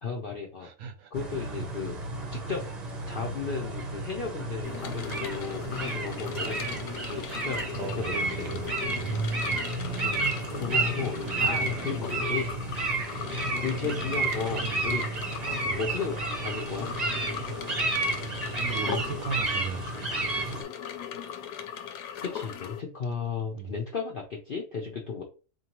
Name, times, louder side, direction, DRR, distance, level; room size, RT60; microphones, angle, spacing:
voice 1, 0.0-0.7 1.1-2.0 2.3-2.6 3.1-6.8 7.1-8.4 10.0-12.5 13.6-15.1 15.8-16.9 22.2-25.2, left 5 dB, 60° left, 0.5 m, -34 dB
voice 2, 0.6-1.1 1.5-1.6 7.8-9.2 9.4-9.8 11.4-11.7 12.2-12.6 14.6-14.8 15.5-15.9 18.6-20.2 23.5-23.7, right 6 dB, 70° right, 1.0 m, -38 dB
sound 1, 1.1-20.6, right 3 dB, 35° right, 0.7 m, -31 dB
sound 2, 4.6-22.8, left 8 dB, 80° left, 1.1 m, -39 dB
4.5 x 2.7 x 2.9 m
omnidirectional pair, 1.7 m